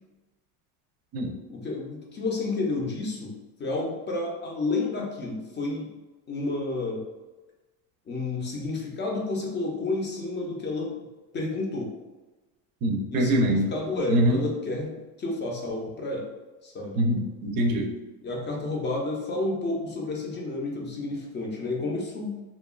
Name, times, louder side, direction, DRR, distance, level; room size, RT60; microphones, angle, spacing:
voice 1, 1.5-5.9 6.3-7.0 8.1-11.0 11.3-11.9 13.1-16.3 16.6-17.0 18.2-22.4, left 2 dB, 25° left, -1 dB, 0.4 m, -30 dB
voice 2, 12.8-13.7 14.1-14.4 17.0-17.9, equal, 50° right, 3 dB, 0.5 m, -23 dB
2.8 x 2.2 x 2.3 m, 1.1 s
supercardioid pair, 125°, 46 cm